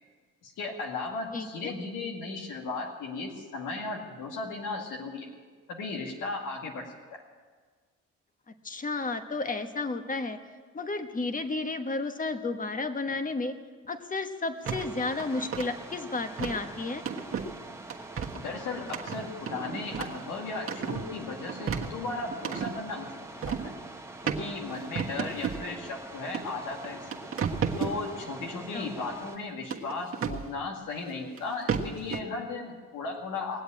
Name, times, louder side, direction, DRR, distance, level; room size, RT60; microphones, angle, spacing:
voice 1, 0.4-5.3 5.7-7.2 18.3-23.1 23.4-23.7 24.2-27.2 27.8-33.6, left 3 dB, 85° left, 1 dB, 2.2 m, -36 dB
voice 2, 1.3-1.7 8.6-10.4 10.7-13.5 13.9-17.0 28.7-28.9, left 3 dB, 25° left, 8 dB, 1.3 m, -32 dB
sound 1, 14.6-29.4, right 2 dB, 10° right, 1.3 m, -45 dB
sound 2, 14.7-14.9 15.2-15.7 16.4-16.6 17.1-17.5 17.9-18.4 18.9-20.2 20.6-21.1 21.5-22.7 23.4-23.7 24.3-24.4 25.0-25.6 26.3-26.4 26.8-28.0 29.7-30.5 31.4-31.5 31.7-32.2, right 6 dB, 45° right, 1.4 m, -32 dB
19.5 x 8.0 x 8.9 m, 1.6 s
cardioid pair, 90°, 30 cm